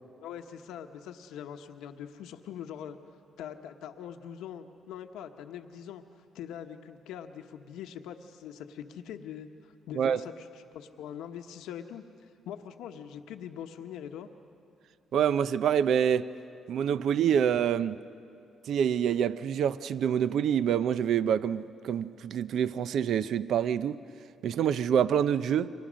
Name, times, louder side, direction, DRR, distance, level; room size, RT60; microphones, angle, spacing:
voice 1, 0.2-3.0 3.4-6.0 6.3-12.0 12.5-14.3, left 9 dB, 90° left, 1.0 m, -42 dB
voice 2, 15.1-16.3 16.7-18.0 18.7-24.0 24.4-25.7, right 8 dB, 70° right, 0.5 m, -26 dB
29.5 x 24.0 x 6.3 m
cardioid pair, 90°, 0 cm